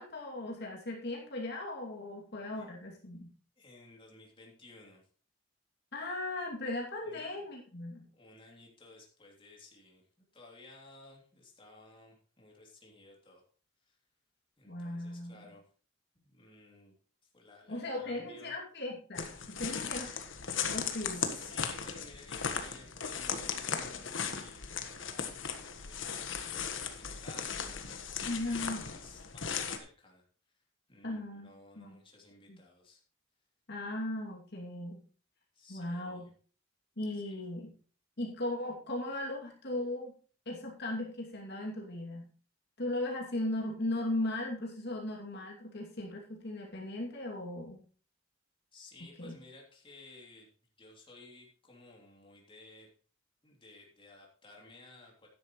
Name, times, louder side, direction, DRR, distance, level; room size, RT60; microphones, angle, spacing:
voice 1, 0.0-3.3 5.9-8.1 14.7-15.5 17.7-20.3 20.7-21.3 28.2-28.8 31.0-31.5 31.8-32.0 32.5-32.6 33.7-35.0 35.7-36.3 37.0-37.7 38.2-40.1 40.5-42.3 42.8-47.8 49.2-49.3, left 1 dB, 60° left, -1 dB, 2.7 m, -37 dB
voice 2, 3.6-5.0 7.0-7.5 8.1-10.0 10.3-13.4 13.9-14.0 14.6-15.7 16.1-16.9 17.3-18.5 21.0-30.2 30.9-33.0 35.5-36.3 37.3-37.4 48.7-50.5 50.8-52.9 53.4-55.3, left 2 dB, 25° left, -1 dB, 3.1 m, -55 dB
sound 1, 19.2-29.8, left 6 dB, 75° left, 1.4 m, -37 dB
12.5 x 10.5 x 3.2 m, 0.40 s
head